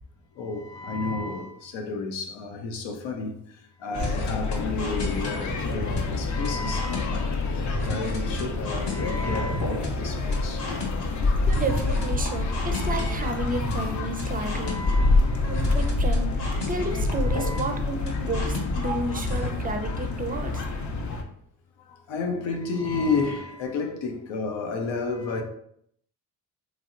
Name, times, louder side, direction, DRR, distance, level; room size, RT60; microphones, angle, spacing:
voice 1, 0.4-3.4 3.8-10.7 13.8-13.9 14.3-15.5 17.2-17.6 20.9-21.0 21.9-25.4, left 4 dB, 85° left, 0.6 m, -31 dB
sound 1, 3.9-21.2, left 3 dB, 40° left, 0.5 m, -27 dB
sound 2, 4.0-19.5, left 1 dB, 65° left, 1.0 m, -34 dB
voice 2, 11.5-14.8 15.5-20.6 22.5-22.6, right 2 dB, 20° right, 0.4 m, -32 dB
3.1 x 2.6 x 2.5 m
supercardioid pair, 60°, 44 cm